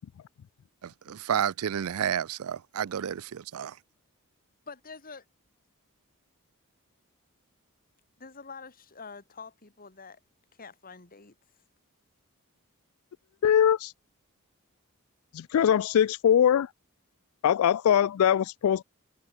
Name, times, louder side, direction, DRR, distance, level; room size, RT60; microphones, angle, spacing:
voice 1, 0.8-3.7, right 8 dB, 75° right, 0.4 m, -31 dB
voice 2, 4.7-5.2 8.2-10.2 10.6-11.4, left 4 dB, 40° left, 2.3 m, -46 dB
voice 3, 13.4-13.9 15.3-16.7 17.4-18.8, left 9 dB, 70° left, 0.3 m, -22 dB
open air
head